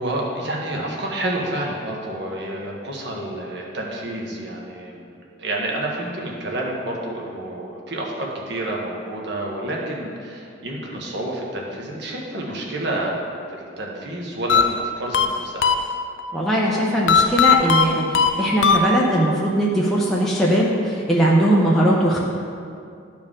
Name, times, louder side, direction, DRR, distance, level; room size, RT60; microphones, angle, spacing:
voice 1, 0.0-13.2 13.5-15.8, right 1 dB, 55° right, -2 dB, 1.2 m, -29 dB
sound 1, 14.5-16.3 17.1-19.3, left 6 dB, 65° left, 0.4 m, -19 dB
voice 2, 16.3-18.1 18.4-22.2, right 1 dB, ahead, -6 dB, 0.8 m, -19 dB
12.0 x 4.6 x 3.7 m, 2.4 s
head